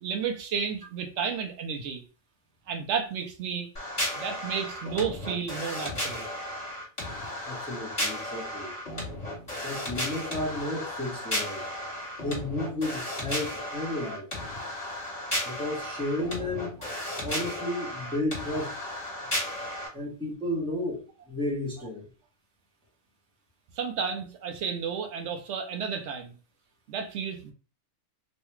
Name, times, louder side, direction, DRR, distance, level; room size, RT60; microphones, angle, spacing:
voice 1, 0.0-2.0 2.7-3.7 4.2-6.2 23.8-26.4 26.9-27.5, right 6 dB, 75° right, 0.9 m, -32 dB
sound 1, 3.8-19.9, left 1 dB, 30° left, 1.5 m, -34 dB
voice 2, 7.4-8.7 9.6-11.6 12.2-14.3 15.4-16.7 17.2-18.8 19.9-22.1, left 1 dB, 5° left, 0.8 m, -33 dB
3.1 x 2.3 x 3.0 m
omnidirectional pair, 1.3 m